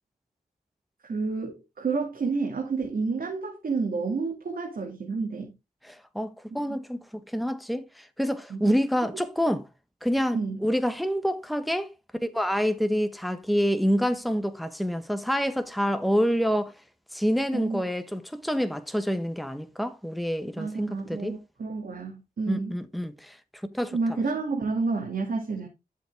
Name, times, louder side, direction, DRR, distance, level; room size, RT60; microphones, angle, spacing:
voice 1, 1.0-5.5 6.5-6.8 8.5-8.8 10.3-10.6 17.5-17.8 20.6-22.8 23.9-25.7, right 4 dB, 75° right, 2.4 m, -30 dB
voice 2, 5.9-9.7 10.0-11.9 12.2-16.7 17.1-21.4 22.5-23.4 23.7-24.0, equal, ahead, 1.2 m, -27 dB
11.0 x 7.3 x 3.5 m
wide cardioid pair, 85°, 15 cm